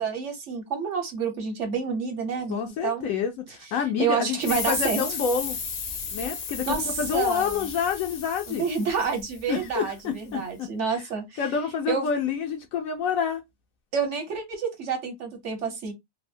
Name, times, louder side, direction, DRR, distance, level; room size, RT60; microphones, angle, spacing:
voice 1, 0.0-3.1 4.0-5.0 6.7-7.7 8.5-11.4 11.9-12.1 13.9-15.9, right 6 dB, 60° right, 1.1 m, -29 dB
voice 2, 2.5-5.6 6.1-8.6 9.5-11.0 11.4-13.4, left 7 dB, 75° left, 1.0 m, -28 dB
sound 1, 4.4-9.7, left 6 dB, 55° left, 0.8 m, -34 dB
3.3 x 2.0 x 2.5 m
omnidirectional pair, 1.5 m